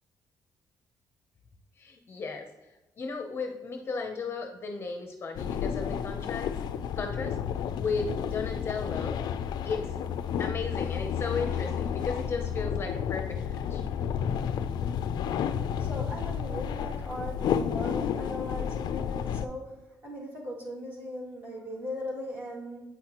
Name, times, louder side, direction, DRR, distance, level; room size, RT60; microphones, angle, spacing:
voice 1, 1.8-2.5 3.0-6.5 7.0-7.4 7.8-9.2 9.6-9.9 10.4-13.8, left 4 dB, 35° left, 4 dB, 0.7 m, -35 dB
sound 1, 5.3-19.5, left 8 dB, 70° left, 0.4 m, -31 dB
voice 2, 15.8-19.7 20.0-22.8, left 1 dB, 30° right, -4 dB, 2.4 m, -38 dB
8.4 x 5.7 x 2.9 m, 1.1 s
cardioid pair, 155°, 7 cm